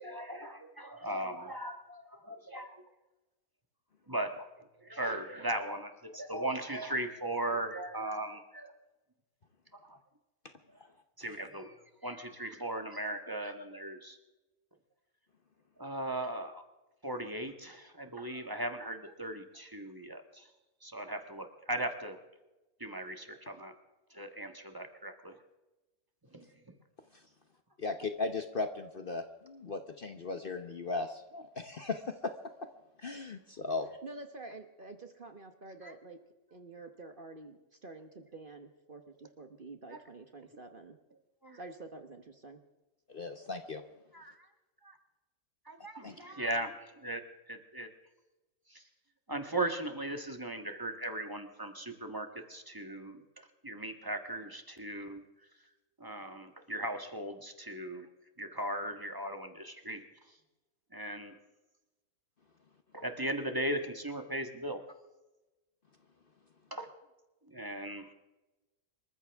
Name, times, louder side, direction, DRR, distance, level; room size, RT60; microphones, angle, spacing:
voice 1, 0.0-2.7 4.1-8.7 9.8-10.0 11.2-14.2 15.8-16.6 17.0-20.5 20.8-22.2 22.8-23.7 24.1-25.3 26.3-26.5 35.8-35.9 39.9-40.0 41.4-41.6 44.1-44.5 44.8-44.9 45.7-47.2 47.5-47.9 48.7-48.8 49.3-55.2 56.0-58.1 58.4-60.0 60.9-61.3 62.9-64.8 66.7-66.9 67.5-68.1, right 1 dB, 15° right, 5 dB, 1.4 m, -38 dB
voice 2, 27.8-32.0 33.0-33.9 43.1-43.8 46.0-46.1, left 3 dB, 40° left, 7 dB, 1.1 m, -37 dB
voice 3, 34.0-36.2 36.5-41.0 41.5-42.6, right 2 dB, 40° right, 6 dB, 1.2 m, -48 dB
26.5 x 14.5 x 3.6 m, 1.1 s
omnidirectional pair, 1.5 m